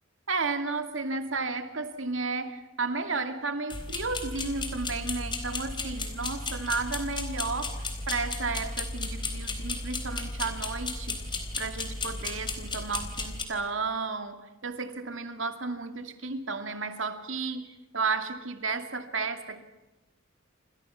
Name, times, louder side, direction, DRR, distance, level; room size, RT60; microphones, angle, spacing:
voice 1, 0.3-19.6, right 4 dB, 80° right, 7 dB, 2.4 m, -33 dB
sound 1, 3.7-13.4, left 3 dB, 25° left, 3.8 m, -34 dB
28.5 x 27.5 x 5.8 m, 1.0 s
head